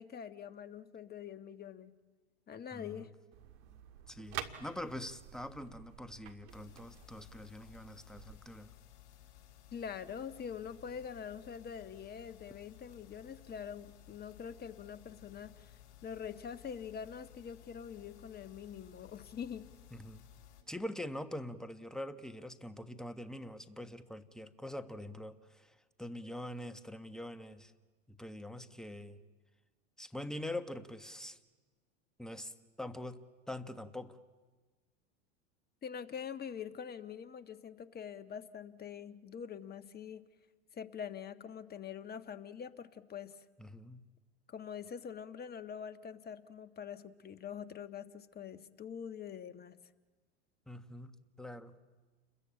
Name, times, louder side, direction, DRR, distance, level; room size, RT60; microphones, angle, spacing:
voice 1, 0.0-1.9 2.5-3.1 9.7-15.7 16.0-19.7 35.8-40.2 40.7-43.4 44.5-49.8, left 7 dB, 25° left, 11 dB, 1.4 m, -44 dB
voice 2, 2.7-3.1 4.1-8.7 19.9-20.2 20.7-27.7 28.1-29.2 30.0-31.4 32.2-34.2 43.6-44.1 50.7-51.8, left 1 dB, ahead, 11 dB, 1.3 m, -44 dB
sound 1, 3.3-8.4, right 11 dB, 65° right, 2.1 m, -49 dB
sound 2, 6.5-20.6, left 12 dB, 65° left, 6.7 m, -58 dB
29.5 x 22.0 x 8.9 m, 1.3 s
hypercardioid pair, 100°, 35 cm